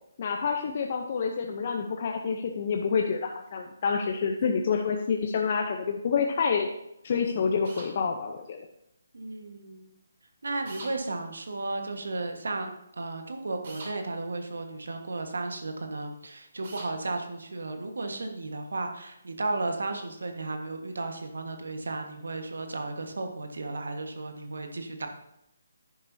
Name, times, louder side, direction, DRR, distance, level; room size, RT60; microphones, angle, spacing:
voice 1, 0.2-6.7 7.0-8.7, left 5 dB, 45° left, 3 dB, 0.8 m, -28 dB
sound 1, 7.6-7.9 10.7-10.9 13.6-13.9 16.6-16.9, right 2 dB, 55° right, 2.6 m, -42 dB
voice 2, 9.1-9.9 10.4-25.1, right 2 dB, 75° right, 5 dB, 1.5 m, -34 dB
10.5 x 10.0 x 2.8 m, 0.81 s
figure-of-eight pair, 150°, 0 cm